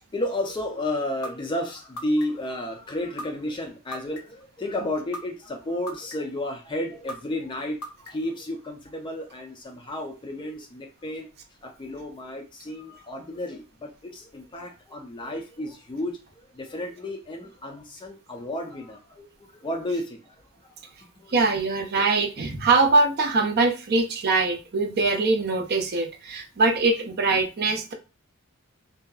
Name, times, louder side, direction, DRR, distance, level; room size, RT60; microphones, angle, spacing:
voice 1, 0.1-11.3 11.6-16.2 16.5-19.3 19.5-20.3 21.2-21.4, left 1 dB, 20° left, 0.4 m, -32 dB
sound 1, 1.2-1.3 2.0-2.5 3.2-3.3 3.9-4.4 5.1-5.2 5.9-6.4 7.1-7.2 7.8-8.3, left 1 dB, 90° left, 0.5 m, -35 dB
voice 2, 21.3-27.9, right 3 dB, 45° right, 0.5 m, -22 dB
2.7 x 2.3 x 2.3 m
head